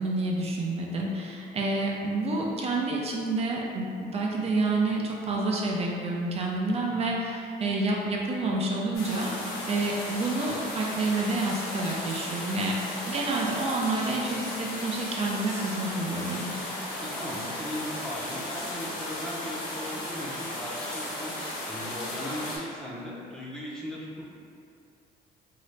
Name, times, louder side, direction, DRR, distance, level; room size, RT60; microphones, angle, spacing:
voice 1, 0.0-12.8 13.1-16.5, right 2 dB, 35° right, -2 dB, 0.5 m, -29 dB
sound 1, 8.9-22.6, left 1 dB, 70° left, 1.2 m, -35 dB
voice 2, 17.0-24.2, left 1 dB, 5° left, -6 dB, 0.7 m, -38 dB
2.9 x 2.8 x 3.2 m, 2.5 s
cardioid pair, 110°, 17 cm